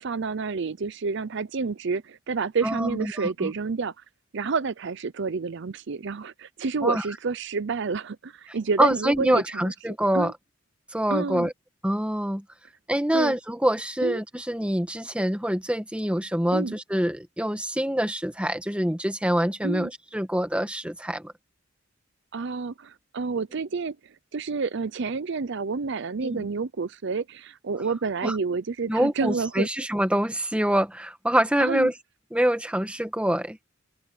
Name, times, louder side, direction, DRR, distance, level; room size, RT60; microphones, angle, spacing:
voice 1, 0.0-4.0 4.3-9.7 10.1-10.3 11.1-11.5 13.1-13.4 14.0-14.2 16.5-16.8 19.6-19.9 22.3-29.7 31.6-31.9, right 4 dB, 60° right, 0.6 m, -29 dB
voice 2, 2.6-3.5 6.8-7.0 8.8-10.3 10.9-11.5 11.8-12.4 12.9-21.3 26.2-26.5 28.2-28.4 28.9-31.9 32.3-33.6, equal, 5° right, 1.5 m, -25 dB
open air
head